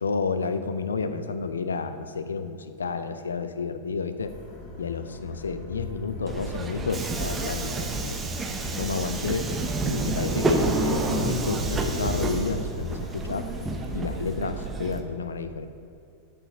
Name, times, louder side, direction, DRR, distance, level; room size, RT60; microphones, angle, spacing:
voice 1, 0.0-4.3 4.8-8.2 8.8-9.5 9.9-13.5 13.9-15.7, left 4 dB, 70° left, 10 dB, 0.5 m, -30 dB
sound 1, 4.2-14.0, left 4 dB, 40° left, 1.8 m, -41 dB
Subway metro underground, 6.3-15.0, right 3 dB, 20° right, 0.8 m, -29 dB
6.9 x 5.8 x 6.4 m, 2.5 s
figure-of-eight pair, 90°, 0 cm